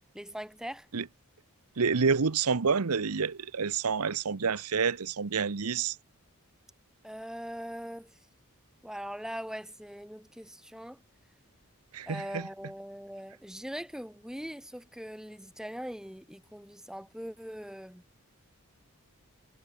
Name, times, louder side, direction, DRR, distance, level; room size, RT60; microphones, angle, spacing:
voice 1, 0.1-0.9 7.0-8.1 8.8-11.0 12.1-18.0, equal, 5° right, 2.9 m, -41 dB
voice 2, 1.8-6.0 11.9-12.5, right 5 dB, 85° right, 0.9 m, -28 dB
head